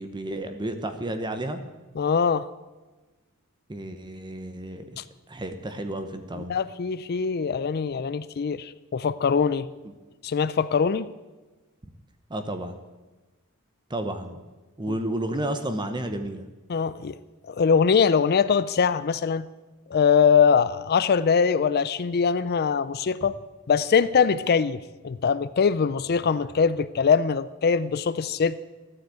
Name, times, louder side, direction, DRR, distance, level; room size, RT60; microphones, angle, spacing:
voice 1, 0.0-1.6 3.7-4.8 5.3-6.6 12.3-12.8 13.9-14.4 14.8-16.4, right 1 dB, 20° right, 8 dB, 0.9 m, -31 dB
voice 2, 2.0-2.5 5.0-5.1 6.4-9.7 10.2-11.1 16.7-17.2 17.4-19.5 19.9-23.4 23.7-28.6, left 6 dB, 45° left, 16 dB, 0.4 m, -22 dB
14.5 x 9.8 x 8.4 m, 1.2 s
head